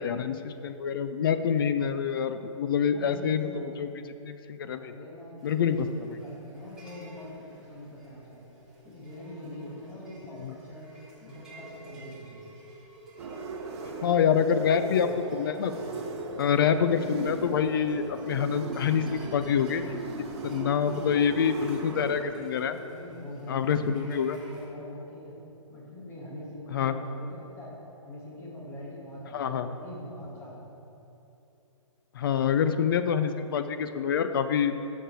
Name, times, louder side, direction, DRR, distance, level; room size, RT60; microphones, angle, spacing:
voice 1, 0.0-3.9 4.2-4.9 5.4-5.9 10.4-10.5 14.0-15.7 16.4-19.8 20.4-22.8 23.5-24.4 26.7-26.9 29.3-29.7 32.1-34.8, left 7 dB, 45° left, 10 dB, 0.4 m, -26 dB
voice 2, 2.9-3.7 4.7-8.4 8.8-10.9 11.2-12.6 14.3-14.5 22.7-25.4 25.7-30.7, left 1 dB, 15° left, -5 dB, 1.8 m, -43 dB
sound 1, 5.4-24.7, equal, 5° right, 1.8 m, -51 dB
sound 2, 13.2-22.2, right 3 dB, 55° right, 1.1 m, -38 dB
11.5 x 6.5 x 4.6 m, 2.9 s
hypercardioid pair, 160°, 17 cm